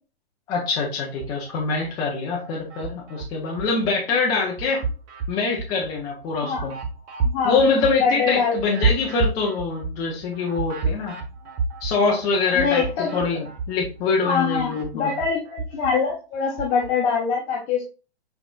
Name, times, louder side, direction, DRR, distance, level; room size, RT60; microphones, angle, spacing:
voice 1, 0.5-4.8 5.3-6.7 7.4-11.2 11.8-15.1, left 4 dB, 10° left, -1 dB, 0.4 m, -24 dB
sound 1, 1.1-1.9 2.3-3.9 4.3-14.0 14.3-16.9, right 4 dB, 35° right, 0.9 m, -30 dB
voice 2, 7.2-7.6 8.0-8.6 12.6-13.2 14.2-17.8, left 6 dB, 30° left, -2 dB, 0.9 m, -23 dB
4.4 x 3.4 x 2.2 m, 0.31 s
hypercardioid pair, 130°, 31 cm